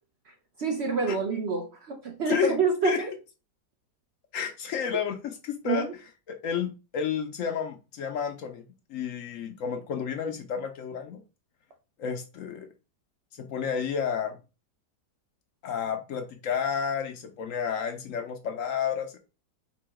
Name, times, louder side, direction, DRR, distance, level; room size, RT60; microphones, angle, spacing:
voice 1, 0.3-3.1 5.6-5.9, right 4 dB, 60° right, 0.7 m, -28 dB
voice 2, 4.3-5.9 6.3-11.2 12.0-12.7 13.4-14.4 15.6-19.2, left 7 dB, 65° left, 0.9 m, -31 dB
3.8 x 2.8 x 4.7 m
omnidirectional pair, 1.7 m